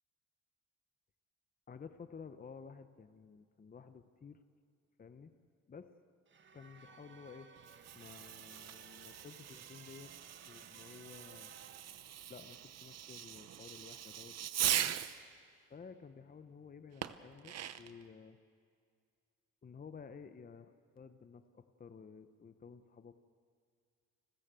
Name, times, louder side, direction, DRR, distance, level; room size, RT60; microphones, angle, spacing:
voice 1, 1.7-4.4 5.0-5.3 5.7-5.9 6.5-7.5 7.9-10.1 10.4-11.5 12.3-14.9 15.7-18.4 19.6-23.1, left 5 dB, 30° left, 10 dB, 0.9 m, -53 dB
sound 1, 6.3-11.8, right 5 dB, 40° right, 1.4 m, -60 dB
Fireworks, 7.6-15.2 17.0-18.0, right 11 dB, 60° right, 0.8 m, -40 dB
30.0 x 13.5 x 7.7 m, 2.2 s
cardioid pair, 90°, 30 cm